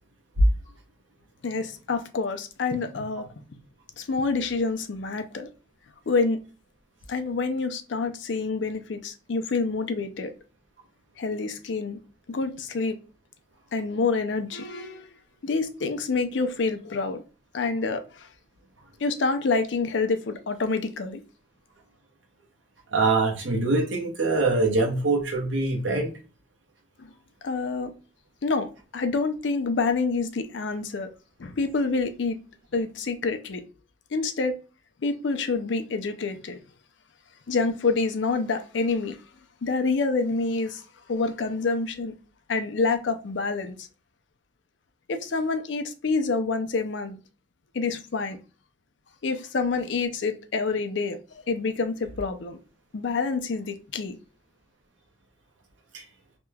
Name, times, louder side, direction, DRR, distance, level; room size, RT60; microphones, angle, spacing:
voice 1, 1.4-3.3 4.0-5.5 6.1-6.4 7.1-10.3 11.2-12.0 12.3-13.0 13.7-15.1 15.4-17.2 17.5-18.3 19.0-21.2 27.0-27.1 27.4-27.9 28.4-31.1 31.4-32.4 32.7-33.6 34.1-34.5 35.0-36.6 37.5-39.2 39.6-42.1 42.5-43.8 45.1-47.2 47.7-48.4 49.2-52.6 52.9-54.2, left 4 dB, 70° left, 0.5 m, -27 dB
voice 2, 22.9-26.1 55.9-56.0, right 3 dB, 75° right, 0.9 m, -24 dB
2.9 x 2.3 x 3.3 m
head